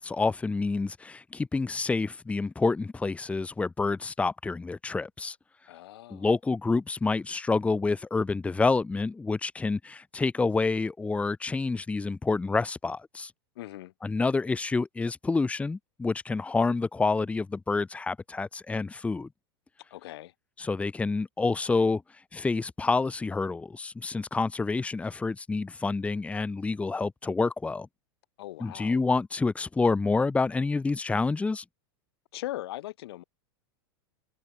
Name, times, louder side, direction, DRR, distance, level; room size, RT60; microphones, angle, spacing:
voice 1, 0.0-5.4 6.1-13.3 14.0-19.3 20.6-22.0 22.3-27.9 28.6-31.6, left 3 dB, 10° left, 1.3 m, -28 dB
voice 2, 5.7-6.3 13.6-13.9 19.9-20.3 28.4-29.0 32.3-33.2, left 16 dB, 70° left, 1.8 m, -39 dB
supercardioid pair, 130°, 13 cm